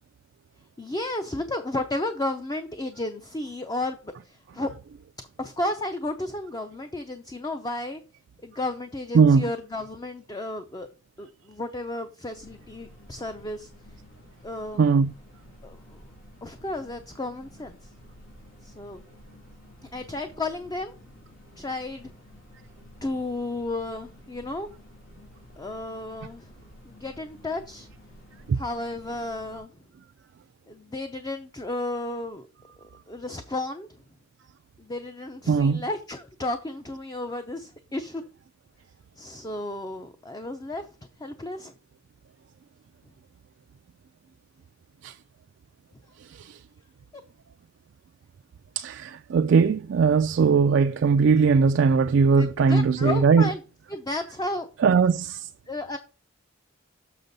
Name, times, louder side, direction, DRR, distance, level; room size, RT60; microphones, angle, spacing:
voice 1, 0.8-4.7 5.4-8.0 8.4-10.9 11.2-13.7 14.4-14.9 15.6-16.0 16.4-17.9 18.6-19.0 19.8-20.9 21.6-22.1 23.0-24.7 25.6-26.6 26.8-27.9 28.5-29.7 30.7-32.5 33.1-33.9 34.8-38.2 39.2-40.9 41.2-41.7 52.3-53.6 53.9-54.7 55.7-56.0, left 2 dB, 20° left, 0.5 m, -33 dB
sound 1, 12.3-29.6, left 1 dB, 90° left, 3.5 m, -51 dB
voice 2, 14.8-15.1 35.5-35.8 45.0-45.1 46.4-46.6 48.8-53.5 54.8-55.5, right 5 dB, 60° right, 0.3 m, -20 dB
6.7 x 6.1 x 4.0 m
head